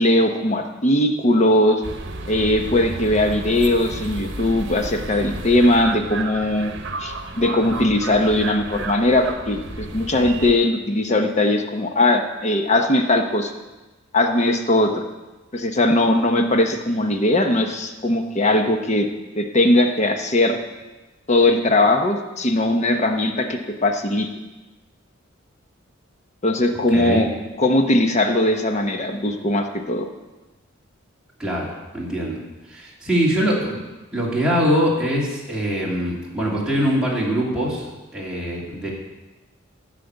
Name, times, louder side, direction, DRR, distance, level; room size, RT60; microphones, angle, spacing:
voice 1, 0.0-1.8 2.3-6.7 7.0-13.5 14.1-15.0 15.5-19.1 19.4-20.6 21.3-24.3 26.4-27.3 27.6-30.1, left 1 dB, 35° left, 5 dB, 0.9 m, -19 dB
sound 1, 1.8-10.5, right 2 dB, 60° right, 1.1 m, -32 dB
voice 2, 26.9-27.2 31.4-32.4 32.7-33.8 34.1-38.9, equal, 5° right, -6 dB, 2.6 m, -23 dB
14.0 x 5.1 x 8.0 m, 1.1 s
head